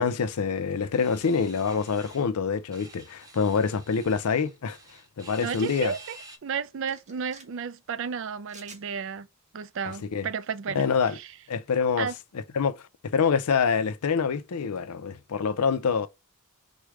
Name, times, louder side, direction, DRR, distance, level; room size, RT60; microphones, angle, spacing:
voice 1, 0.0-4.8 5.2-5.9 10.1-10.3 10.7-11.2 11.5-12.1 12.5-16.1, left 5 dB, 90° left, 0.5 m, -26 dB
sound 1, 1.0-2.3 2.7-6.4, right 2 dB, 15° right, 0.7 m, -49 dB
sound 2, 5.4-5.9 6.9-7.4 8.5-8.8, right 4 dB, 35° right, 1.4 m, -49 dB
voice 2, 5.4-6.2 6.4-9.3 9.5-10.9 11.1-11.3 12.0-12.1, right 6 dB, 60° right, 0.4 m, -33 dB
4.6 x 2.2 x 4.7 m
head